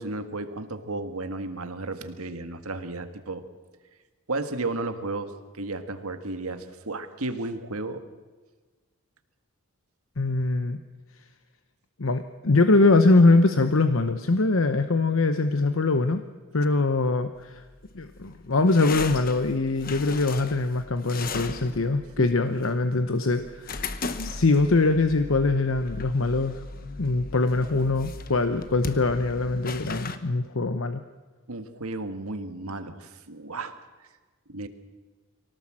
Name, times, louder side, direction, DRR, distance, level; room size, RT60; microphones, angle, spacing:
voice 1, 0.0-3.5 4.3-8.0 22.2-22.3 31.5-33.8 34.5-34.7, right 2 dB, 90° right, 9 dB, 1.7 m, -33 dB
voice 2, 10.2-10.8 12.0-16.2 16.5-17.6 17.9-26.6 27.0-31.0, left 3 dB, 70° left, 9 dB, 0.9 m, -23 dB
sound 1, 17.4-30.2, left 3 dB, 40° left, 1.2 m, -38 dB
23.5 x 18.0 x 7.6 m, 1.3 s
head